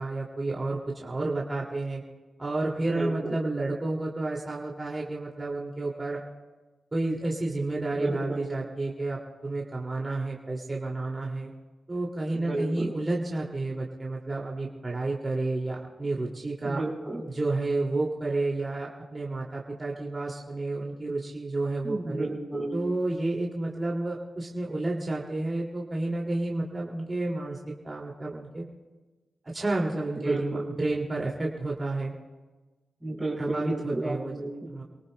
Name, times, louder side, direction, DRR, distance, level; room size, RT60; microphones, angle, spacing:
voice 1, 0.0-2.0 2.4-6.2 6.9-11.5 11.9-16.8 17.3-22.3 22.7-27.6 27.8-28.6 29.4-32.1 33.4-34.4 34.7-34.8, right 2 dB, 30° right, -2 dB, 2.4 m, -30 dB
voice 2, 2.9-3.3 8.0-8.4 12.3-12.9 16.6-17.3 21.8-22.7 30.2-30.7 33.0-34.7, right 2 dB, 10° right, -4 dB, 5.3 m, -32 dB
29.5 x 18.5 x 2.2 m, 1.2 s
supercardioid pair, 50°, 0 cm